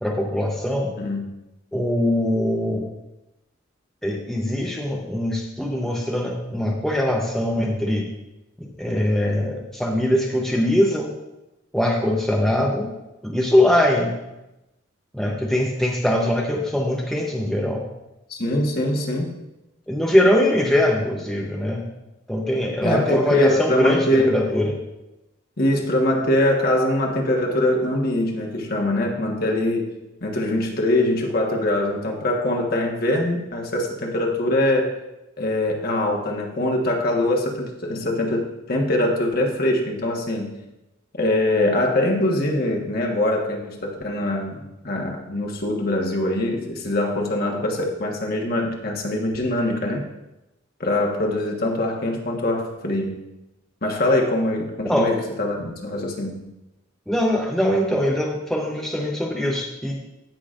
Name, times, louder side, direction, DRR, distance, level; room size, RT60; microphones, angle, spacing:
voice 1, 0.0-0.9 1.7-2.9 4.0-8.1 8.6-11.1 11.7-12.9 13.2-14.2 15.1-17.8 19.9-21.9 22.3-24.8 54.8-55.2 57.1-59.9, left 1 dB, ahead, -2 dB, 0.8 m, -22 dB
voice 2, 18.3-19.3 22.8-24.4 25.6-29.9 30.2-34.9 35.4-40.6 41.1-50.1 50.8-53.3 53.8-56.4, left 1 dB, 50° left, 0 dB, 1.3 m, -23 dB
17.0 x 6.0 x 2.5 m, 0.96 s
head